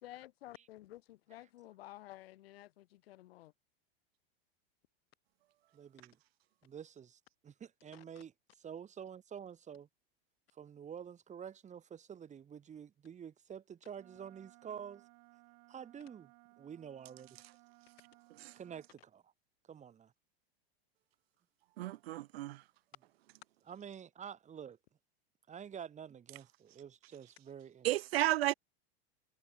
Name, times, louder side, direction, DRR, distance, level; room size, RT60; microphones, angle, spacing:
voice 1, 0.0-3.5 7.9-8.0, left 16 dB, 80° left, 2.0 m, -53 dB
voice 2, 5.7-6.2 6.6-9.9 10.6-15.1 15.7-16.3 16.6-17.3 18.5-19.3 19.7-20.1 23.7-24.8 25.5-27.9, right 8 dB, 25° right, 2.5 m, -48 dB
Wind instrument woodwind instrument, 14.0-18.9, right 35 dB, 60° right, 7.2 m, -63 dB
voice 3, 21.8-22.6 27.8-28.5, right 16 dB, 85° right, 0.7 m, -32 dB
supercardioid pair, 125°, 30 cm